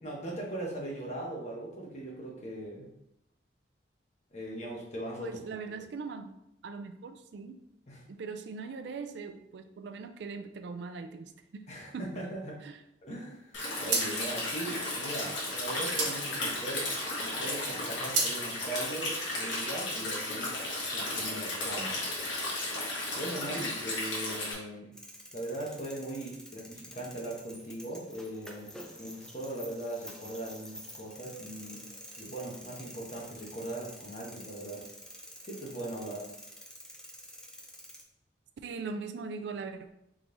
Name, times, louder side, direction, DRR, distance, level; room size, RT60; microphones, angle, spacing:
voice 1, 0.0-2.9 4.3-5.3 5.7-5.9 7.9-8.0 11.7-12.5 13.0-20.5 20.9-22.0 23.1-24.9 25.3-28.7 29.0-31.8 32.2-34.8 35.4-36.3, right 1 dB, 35° left, -2 dB, 1.0 m, -39 dB
voice 2, 5.2-6.3 6.6-7.6 8.1-11.6 11.9-12.1 12.6-12.8 38.6-39.9, right 4 dB, 65° right, 8 dB, 0.3 m, -40 dB
sound 1, 13.2-13.4 13.8-17.2 17.6-18.4, right 4 dB, 85° right, 1.1 m, -33 dB
Stream, 13.5-24.5, left 2 dB, 75° left, 1.4 m, -34 dB
sound 2, 24.9-38.0, equal, 5° left, 0.4 m, -49 dB
3.7 x 3.1 x 3.8 m, 0.82 s
head